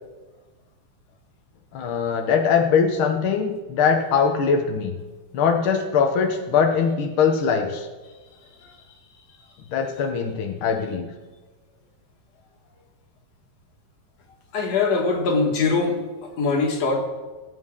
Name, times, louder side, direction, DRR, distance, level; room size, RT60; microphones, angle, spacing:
voice 1, 1.7-5.0 5.3-7.9 9.7-11.1, left 6 dB, 85° left, 3 dB, 1.1 m, -21 dB
voice 2, 14.5-17.0, left 4 dB, 55° left, 2 dB, 2.4 m, -22 dB
20.5 x 8.5 x 3.7 m, 1.2 s
omnidirectional pair, 4.0 m